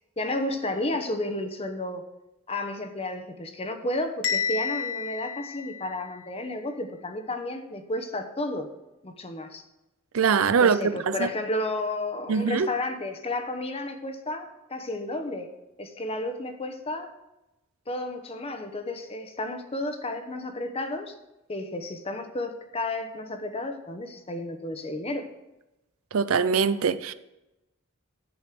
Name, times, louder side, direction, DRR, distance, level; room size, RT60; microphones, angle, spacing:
voice 1, 0.2-2.0 2.5-8.7 9.0-9.6 10.6-15.5 15.8-17.1 17.9-21.2 21.5-25.3, left 2 dB, 30° left, 0.9 m, -32 dB
Bell, 4.2-6.3, left 6 dB, 70° left, 1.3 m, -31 dB
voice 2, 10.1-11.3 12.3-12.7 26.1-27.1, right 6 dB, 80° right, 0.5 m, -23 dB
10.5 x 5.3 x 7.6 m
head